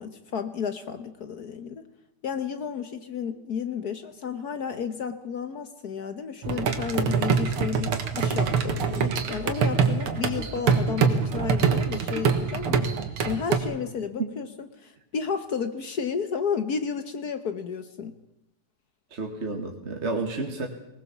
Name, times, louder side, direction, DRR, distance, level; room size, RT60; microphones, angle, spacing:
voice 1, 0.0-1.9 2.2-12.9 13.2-18.1, left 6 dB, 55° left, 10 dB, 1.3 m, -32 dB
sound 1, 6.4-13.6, right 6 dB, 80° right, 2.4 m, -25 dB
voice 2, 19.1-20.7, right 3 dB, 35° right, 2 dB, 1.9 m, -30 dB
20.0 x 19.5 x 7.2 m, 0.88 s
omnidirectional pair, 2.4 m